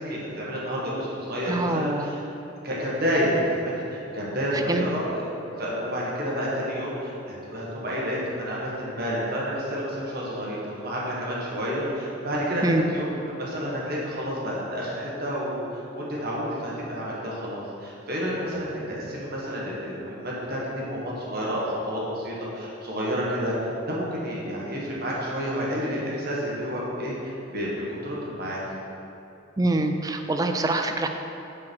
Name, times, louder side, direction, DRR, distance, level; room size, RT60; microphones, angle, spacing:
voice 1, 0.0-2.2 2.6-5.2 5.6-28.6, equal, 50° right, -5 dB, 1.6 m, -29 dB
voice 2, 1.5-2.1 4.7-4.8 12.6-12.9 29.6-31.1, right 2 dB, 20° right, 6 dB, 0.3 m, -25 dB
5.5 x 5.3 x 6.3 m, 2.9 s
head